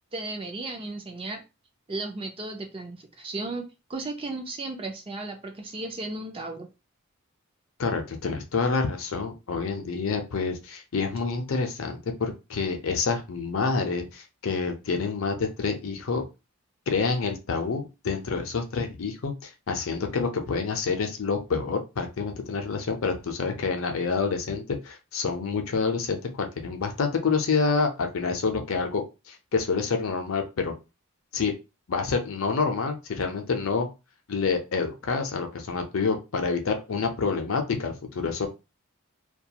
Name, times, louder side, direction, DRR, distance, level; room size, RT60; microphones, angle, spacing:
voice 1, 0.1-1.4 1.9-3.6 3.9-6.7, right 2 dB, 25° right, 4 dB, 0.4 m, -35 dB
voice 2, 7.8-16.2 16.9-30.7 31.3-31.5 31.9-33.9 34.3-38.5, left 4 dB, 65° left, 5 dB, 0.5 m, -28 dB
2.3 x 2.3 x 2.7 m, 0.27 s
head